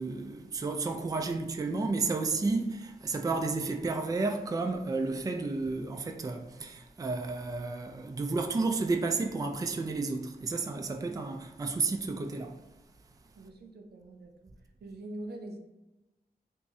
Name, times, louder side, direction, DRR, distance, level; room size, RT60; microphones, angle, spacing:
voice 1, 0.0-12.6, right 3 dB, 20° right, 0.3 m, -32 dB
voice 2, 13.4-14.5 14.8-15.6, right 1 dB, 80° right, 0.6 m, -43 dB
3.0 x 2.6 x 3.5 m
wide cardioid pair, 75°, 16 cm